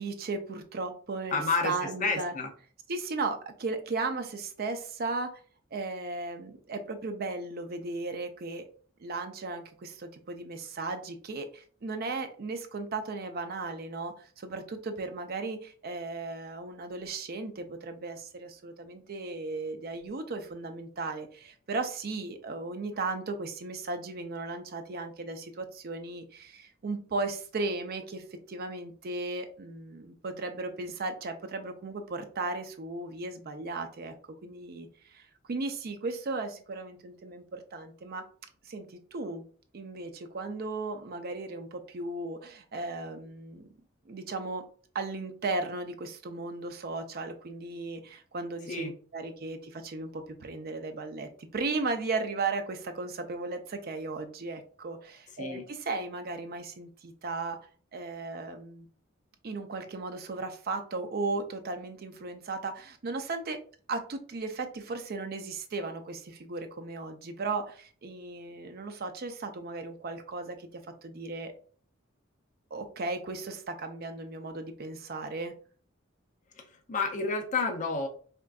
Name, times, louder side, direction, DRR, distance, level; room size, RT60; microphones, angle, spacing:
voice 1, 0.0-2.3 2.9-5.4 5.7-8.7 9.0-34.1 34.4-38.2 38.6-39.4 39.7-43.7 44.1-44.6 44.9-57.6 57.9-58.9 59.4-63.6 63.9-71.5 72.7-75.5, right 3 dB, 50° right, 7 dB, 0.5 m, -36 dB
voice 2, 1.3-2.5 48.7-48.9 55.4-55.6 76.6-78.1, left 4 dB, 40° left, 4 dB, 0.5 m, -30 dB
4.3 x 2.5 x 2.3 m, 0.43 s
head